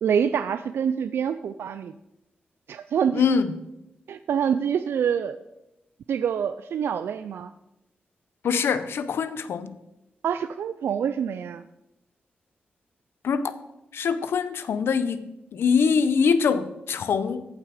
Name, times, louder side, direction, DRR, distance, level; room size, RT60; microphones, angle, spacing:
voice 1, 0.0-1.9 2.7-3.2 4.1-5.4 6.1-7.5 10.2-11.6, right 7 dB, 90° right, 11 dB, 0.3 m, -26 dB
voice 2, 3.1-3.5 8.4-9.8 13.2-13.5 13.9-17.5, left 6 dB, 85° left, 13 dB, 0.7 m, -23 dB
14.0 x 5.9 x 4.9 m, 0.92 s
wide cardioid pair, 170°, 4 cm